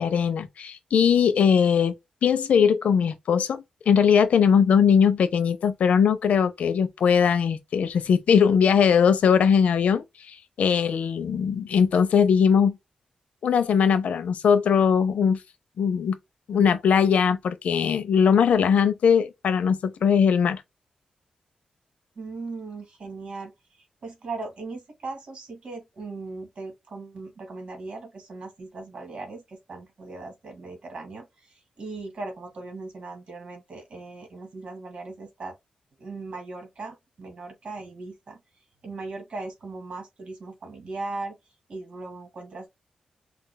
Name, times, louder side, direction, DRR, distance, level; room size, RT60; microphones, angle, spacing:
voice 1, 0.0-1.9 2.2-12.8 13.4-15.4 15.8-16.2 16.5-20.6, left 7 dB, 85° left, 0.7 m, -20 dB
voice 2, 22.2-23.5 23.8-35.5 36.0-38.4 38.8-41.4 41.7-42.7, right 3 dB, 55° right, 2.4 m, -38 dB
5.9 x 2.5 x 2.2 m
wide cardioid pair, 115°, 2 cm